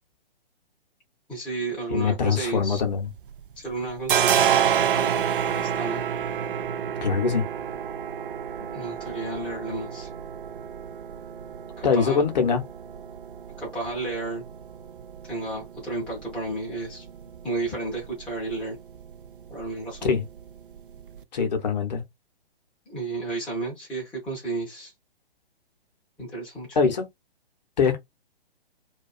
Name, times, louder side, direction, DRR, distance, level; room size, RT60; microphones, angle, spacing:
voice 1, 1.3-2.8 3.6-6.0 8.7-10.1 11.8-12.2 13.6-14.4 15.2-17.0 17.4-18.8 19.5-20.1 22.9-24.9 26.2-26.8, right 3 dB, 5° left, 0.5 m, -32 dB
voice 2, 1.9-3.1 7.0-7.4 11.8-12.6 20.0-20.2 21.3-22.0 26.8-27.1 27.8-28.0, left 5 dB, 45° left, 0.7 m, -23 dB
sound 1, 2.5-3.4 3.7-21.2, right 9 dB, 60° right, 0.5 m, -30 dB
2.3 x 2.2 x 2.3 m
figure-of-eight pair, 130°, 30 cm